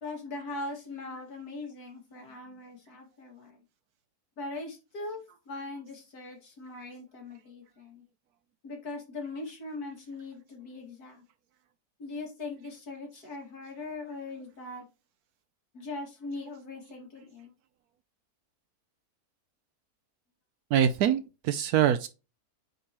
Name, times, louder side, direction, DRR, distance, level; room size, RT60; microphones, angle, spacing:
voice 1, 0.0-3.6 4.4-8.0 8.6-11.2 12.0-14.8 15.7-17.5, left 2 dB, 80° left, 2.5 m, -40 dB
voice 2, 20.7-22.1, right 9 dB, 80° right, 1.1 m, -24 dB
9.2 x 3.9 x 2.9 m
omnidirectional pair, 1.6 m